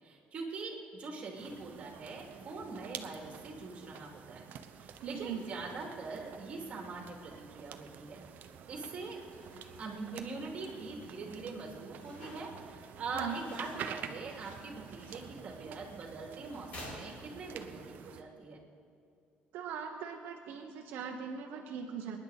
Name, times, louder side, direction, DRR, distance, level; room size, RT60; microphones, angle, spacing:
voice 1, 0.0-4.4 4.8-8.2 8.7-9.2 9.8-18.6, right 3 dB, 35° right, 0 dB, 2.7 m, -43 dB
sound 1, 1.3-18.2, right 8 dB, 55° right, 0.8 m, -49 dB
voice 2, 5.0-5.4 13.1-13.4 19.5-22.2, right 7 dB, 75° right, 1 dB, 1.1 m, -40 dB
sound 2, 9.3-17.7, left 1 dB, 40° left, 4.5 m, -54 dB
27.5 x 10.0 x 4.1 m, 2.4 s
cardioid pair, 150°, 4 cm